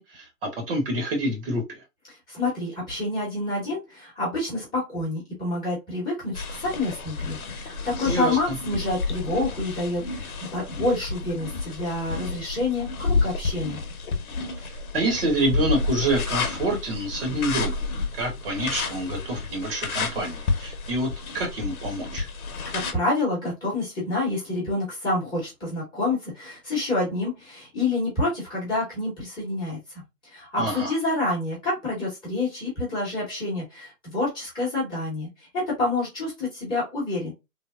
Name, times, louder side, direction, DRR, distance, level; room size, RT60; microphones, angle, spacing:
voice 1, 0.0-1.8 8.1-8.6 14.6-17.9 18.1-22.3 30.6-30.9, right 1 dB, 40° right, 0.9 m, -27 dB
voice 2, 2.3-13.8 22.6-29.8 30.2-37.3, left 2 dB, 10° left, 1.0 m, -28 dB
sound 1, 6.3-22.9, left 4 dB, 65° left, 0.9 m, -30 dB
3.3 x 2.1 x 2.3 m
hypercardioid pair, 145°, 46 cm